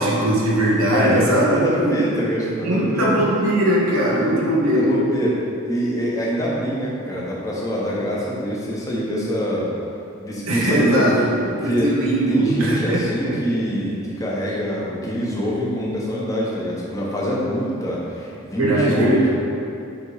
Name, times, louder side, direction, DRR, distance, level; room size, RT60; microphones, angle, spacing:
voice 1, 0.0-1.5 1.8-1.9 2.6-5.0 10.5-13.4 18.6-19.3, right 1 dB, 80° right, -4 dB, 1.1 m, -20 dB
voice 2, 0.9-3.2 4.1-4.5 4.7-9.7 10.2-11.9 12.3-19.3, equal, 15° left, -5 dB, 1.1 m, -24 dB
7.4 x 3.7 x 4.9 m, 2.5 s
head